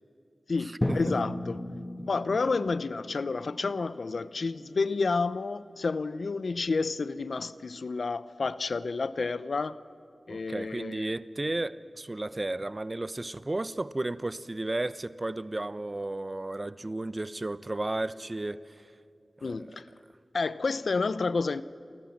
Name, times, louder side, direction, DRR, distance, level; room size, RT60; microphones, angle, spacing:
voice 1, 0.5-1.7 2.1-9.8 10.3-11.1 19.4-19.9 20.3-21.6, left 4 dB, 75° left, 0.7 m, -30 dB
Drum, 0.8-4.8, left 1 dB, 20° left, 1.6 m, -35 dB
voice 2, 10.3-18.9 19.4-19.7, right 2 dB, 35° right, 0.8 m, -33 dB
29.5 x 24.0 x 7.3 m
wide cardioid pair, 60°, 0 cm